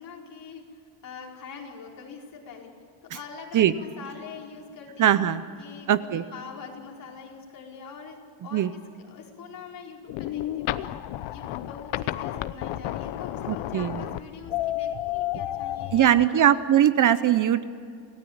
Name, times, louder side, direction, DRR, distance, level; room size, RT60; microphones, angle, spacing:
voice 1, 0.0-2.7 3.0-5.2 5.6-8.2 8.4-8.8 9.1-10.9 11.3-16.5, left 5 dB, 45° left, -1 dB, 4.8 m, -43 dB
voice 2, 5.0-5.4 5.9-6.2 8.5-8.7 13.5-14.0 15.9-17.6, right 10 dB, 45° right, 14 dB, 0.8 m, -20 dB
sound 1, 10.1-16.3, left 13 dB, 85° left, 1.0 m, -31 dB
28.5 x 18.5 x 8.7 m, 2.3 s
cardioid pair, 165°, 45 cm